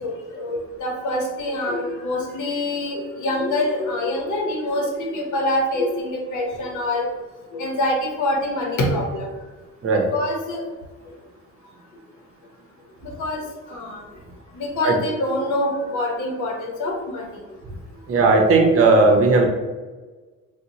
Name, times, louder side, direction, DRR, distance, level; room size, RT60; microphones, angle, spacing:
voice 1, 0.0-4.9 5.1-7.1 7.5-9.3 10.1-10.6 13.2-13.4 13.7-14.0 14.6-17.3, left 1 dB, 80° left, 1 dB, 0.8 m, -25 dB
voice 2, 18.1-19.5, right 3 dB, 50° right, 2 dB, 0.7 m, -16 dB
3.9 x 2.1 x 2.7 m, 1.3 s
cardioid pair, 90°, 30 cm